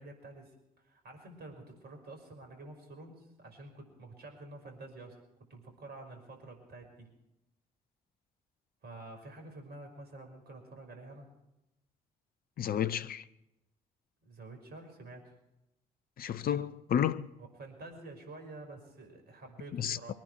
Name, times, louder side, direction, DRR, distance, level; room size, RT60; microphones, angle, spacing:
voice 1, 0.0-5.2 5.5-7.1 8.8-11.3 14.2-15.3 17.4-20.2, right 2 dB, 60° right, 5.8 m, -49 dB
voice 2, 12.6-13.2 16.2-17.3 19.7-20.1, left 9 dB, 50° left, 0.9 m, -31 dB
24.0 x 10.5 x 4.6 m
figure-of-eight pair, 45°, 19 cm